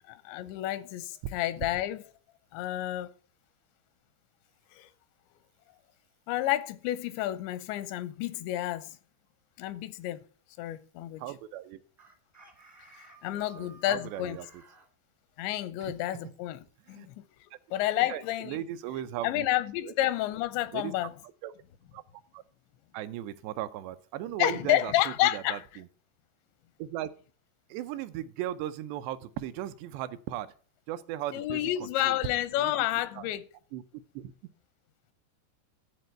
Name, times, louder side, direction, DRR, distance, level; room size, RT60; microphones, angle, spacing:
voice 1, 0.1-2.0 2.5-3.1 4.7-4.9 6.3-9.0 9.6-10.2 10.6-11.2 12.9-14.4 15.4-16.6 16.9-17.1 17.7-18.6 19.2-21.1 24.4-25.6 31.3-33.4, left 14 dB, 90° left, 3.0 m, -30 dB
voice 2, 11.2-11.8 13.3-14.6 15.8-16.2 16.9-17.1 18.0-19.5 19.8-19.9 20.7-20.9 21.2-21.5 21.9-22.0 22.3-22.4 22.9-25.9 26.8-27.1 27.7-30.5 30.9-32.2 32.6-32.7 33.2-33.3 33.7-33.8 34.1-34.3, right 12 dB, 80° right, 2.8 m, -37 dB
Chicken rooster, 12.0-14.9, right 3 dB, 15° right, 0.5 m, -55 dB
12.5 x 4.5 x 7.7 m
omnidirectional pair, 5.0 m